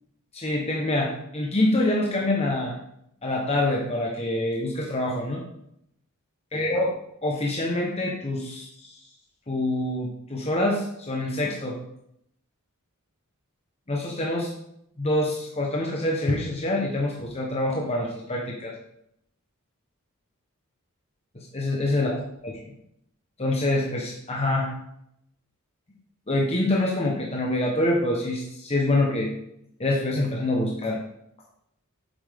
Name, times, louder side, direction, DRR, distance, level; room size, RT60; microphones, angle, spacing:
voice 1, 0.3-2.7 3.2-5.4 6.5-6.9 7.2-8.9 9.5-11.8 13.9-14.5 15.0-18.7 21.3-22.1 22.4-22.6 23.4-24.7 26.3-29.3 29.8-31.0, left 1 dB, 30° left, -2 dB, 1.2 m, -26 dB
8.7 x 7.6 x 3.7 m, 0.74 s
head